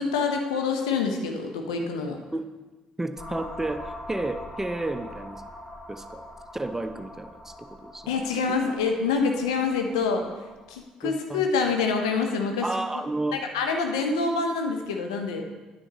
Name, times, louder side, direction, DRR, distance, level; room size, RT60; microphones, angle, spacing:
voice 1, 0.0-2.2 8.1-10.2 10.7-12.7 13.3-15.5, left 4 dB, 70° left, 3 dB, 0.8 m, -26 dB
voice 2, 3.0-5.4 5.9-6.2 6.5-8.1 11.0-11.4 12.6-13.4, right 2 dB, 10° right, 9 dB, 0.6 m, -31 dB
sound 1, 3.2-10.8, left 1 dB, 35° left, 3.1 m, -43 dB
9.8 x 8.1 x 3.0 m, 1.2 s
figure-of-eight pair, 50°, 3 cm